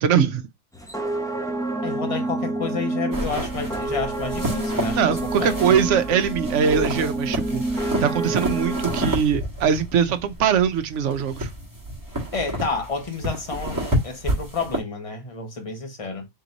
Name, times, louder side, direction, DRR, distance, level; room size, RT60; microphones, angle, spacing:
voice 1, 0.0-0.4 5.0-11.5, right 7 dB, 65° right, 0.9 m, -22 dB
sound 1, 0.7-9.1, right 2 dB, 5° left, 0.4 m, -28 dB
voice 2, 1.8-5.8 12.3-16.3, left 4 dB, 25° left, 1.0 m, -30 dB
sound 2, 3.1-14.8, right 1 dB, 15° right, 1.3 m, -30 dB
3.7 x 3.0 x 3.8 m
omnidirectional pair, 1.4 m